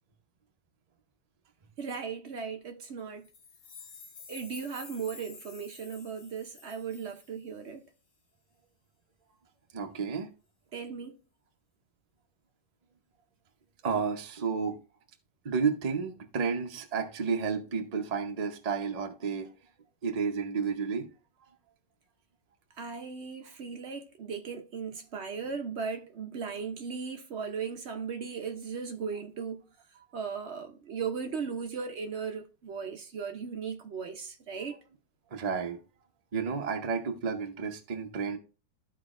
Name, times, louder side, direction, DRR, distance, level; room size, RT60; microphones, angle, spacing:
voice 1, 1.8-3.3 4.3-7.8 10.7-11.2 22.8-29.6 30.1-34.8, right 6 dB, 60° right, 0.7 m, -37 dB
sound 1, 3.2-7.7, left 4 dB, 70° left, 1.9 m, -50 dB
voice 2, 9.7-10.3 13.8-14.8 15.4-19.5 20.0-21.1 35.3-35.8 36.3-38.4, right 5 dB, 90° right, 0.3 m, -31 dB
13.5 x 4.5 x 2.4 m
omnidirectional pair, 2.0 m